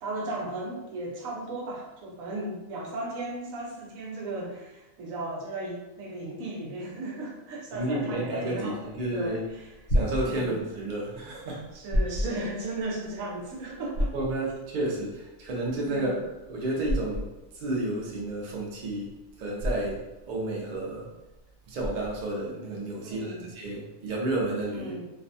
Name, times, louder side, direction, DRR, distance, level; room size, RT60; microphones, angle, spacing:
voice 1, 0.0-9.7 10.3-10.6 11.7-14.1 15.8-16.2 23.0-23.5 24.7-25.0, right 2 dB, 85° right, -1 dB, 1.0 m, -36 dB
voice 2, 7.7-9.4 9.9-11.6 14.1-16.2 16.5-17.3 17.5-19.1 19.4-20.0 20.3-21.1 21.7-24.9, right 2 dB, 50° right, -3 dB, 0.6 m, -31 dB
sound 1, 9.5-22.4, equal, 55° left, 0.8 m, -32 dB
2.6 x 2.2 x 2.6 m, 1.0 s
omnidirectional pair, 1.4 m